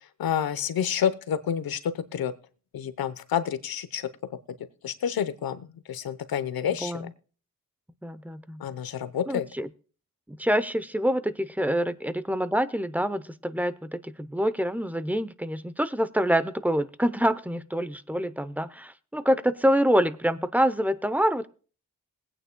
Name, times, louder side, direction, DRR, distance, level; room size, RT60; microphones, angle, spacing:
voice 1, 0.2-2.3 2.7-4.4 4.8-7.1 8.6-9.5, left 8 dB, 85° left, 12 dB, 0.9 m, -29 dB
voice 2, 8.0-8.6 9.3-9.7 10.3-21.5, equal, 5° right, 15 dB, 0.7 m, -26 dB
21.0 x 8.9 x 2.2 m, 0.39 s
cardioid pair, 60°, 35 cm